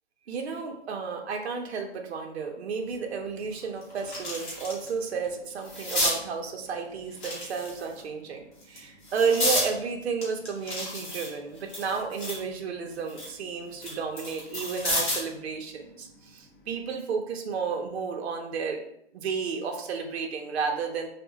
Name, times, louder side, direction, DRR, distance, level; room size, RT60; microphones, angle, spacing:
voice 1, 0.3-18.8 19.1-21.1, right 5 dB, 65° right, 3 dB, 0.5 m, -32 dB
sound 1, 2.9-3.0 3.5-4.9 5.2-6.2 7.1-8.0 8.6-9.7 10.2-12.5 12.9-15.3 16.7-16.9, left 1 dB, 45° left, 1.0 m, -31 dB
2.7 x 2.0 x 2.7 m, 0.73 s
hypercardioid pair, 175°, 35 cm